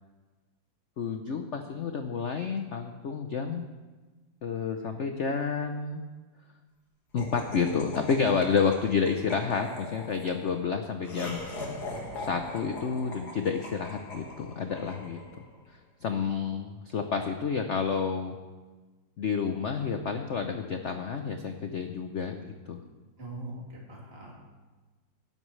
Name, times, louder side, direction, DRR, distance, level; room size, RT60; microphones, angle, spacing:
voice 1, 1.0-3.6 4.4-6.0 7.1-11.4 12.2-15.2 15.7-18.3 19.2-22.8, left 5 dB, 75° left, 6 dB, 0.6 m, -30 dB
Laughter, 7.2-15.5, left 2 dB, 55° left, 2.3 m, -41 dB
voice 2, 23.2-24.3, right 2 dB, 30° right, -5 dB, 3.0 m, -41 dB
18.0 x 11.0 x 3.2 m, 1.3 s
omnidirectional pair, 2.2 m